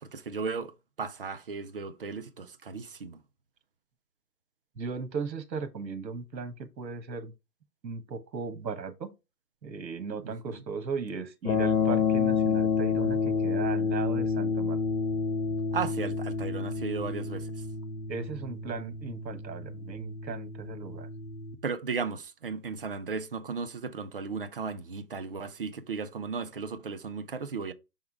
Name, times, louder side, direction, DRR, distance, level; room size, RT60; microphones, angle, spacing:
voice 1, 0.0-3.2 10.2-10.6 15.7-17.7 21.6-27.7, right 5 dB, 35° right, 0.4 m, -35 dB
voice 2, 4.8-7.3 7.8-9.1 9.6-14.8 18.1-21.1, right 5 dB, 85° right, 1.4 m, -37 dB
sound 1, 11.4-21.5, left 5 dB, 55° left, 1.3 m, -29 dB
6.2 x 3.7 x 4.6 m
hypercardioid pair, 150°, 50 cm